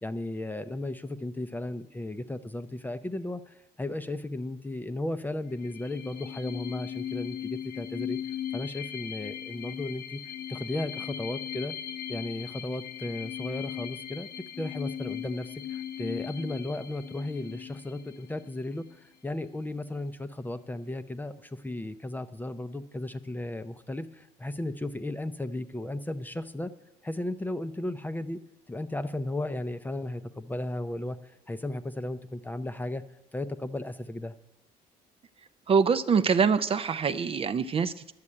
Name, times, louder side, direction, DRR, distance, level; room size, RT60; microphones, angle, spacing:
voice 1, 0.0-8.2 8.5-10.2 10.5-11.7 12.1-14.3 14.6-26.7 27.0-28.4 28.7-33.0 33.3-34.3, left 1 dB, 10° left, 11 dB, 0.5 m, -35 dB
sound 1, 5.5-18.9, left 10 dB, 75° left, 0.9 m, -38 dB
voice 2, 35.7-38.1, right 5 dB, 35° right, 12 dB, 0.5 m, -24 dB
11.0 x 6.6 x 8.5 m, 0.90 s
cardioid pair, 110°, 17 cm